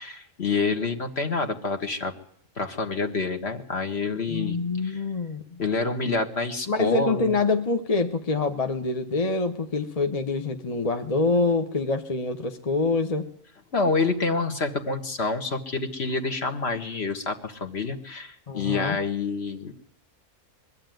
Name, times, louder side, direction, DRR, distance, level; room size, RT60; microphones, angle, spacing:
voice 1, 0.0-2.1 2.6-4.6 4.8-5.0 5.6-7.3 13.7-19.7, left 4 dB, 45° left, 6 dB, 1.8 m, -27 dB
voice 2, 4.3-5.6 6.7-13.3 18.5-19.0, left 3 dB, 30° left, 6 dB, 1.0 m, -25 dB
22.5 x 14.0 x 9.2 m, 0.67 s
omnidirectional pair, 1.6 m